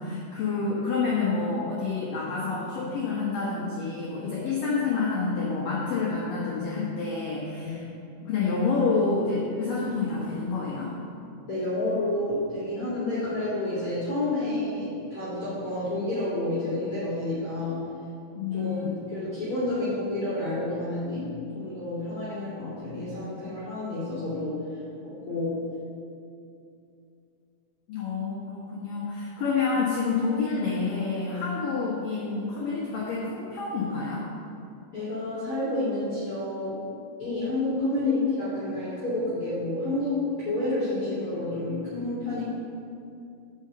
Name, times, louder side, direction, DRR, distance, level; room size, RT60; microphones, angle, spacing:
voice 1, 0.0-7.8 8.3-10.9 18.3-18.9 27.9-34.3, left 4 dB, 65° left, -5 dB, 2.3 m, -28 dB
voice 2, 11.5-17.9 18.5-24.6 25.0-25.6 34.9-36.8 37.2-42.4, left 2 dB, 35° left, -10 dB, 2.7 m, -29 dB
8.9 x 6.6 x 6.8 m, 2.5 s
omnidirectional pair, 5.3 m